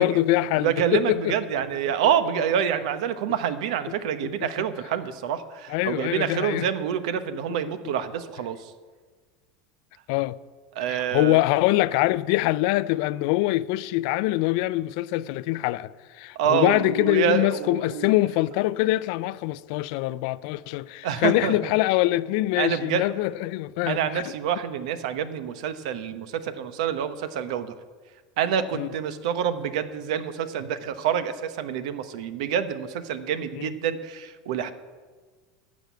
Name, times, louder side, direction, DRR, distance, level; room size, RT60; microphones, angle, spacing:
voice 1, 0.0-1.4 4.2-4.5 5.7-6.7 10.1-10.3 10.9-24.2 28.7-28.9 33.5-33.7, left 17 dB, 65° left, 0.4 m, -24 dB
voice 2, 0.6-8.7 10.7-11.4 16.3-18.1 21.0-21.6 22.6-23.0 23.9-27.7 28.4-34.7, right 8 dB, 75° right, 0.9 m, -27 dB
12.0 x 6.4 x 8.2 m
supercardioid pair, 130°, 4 cm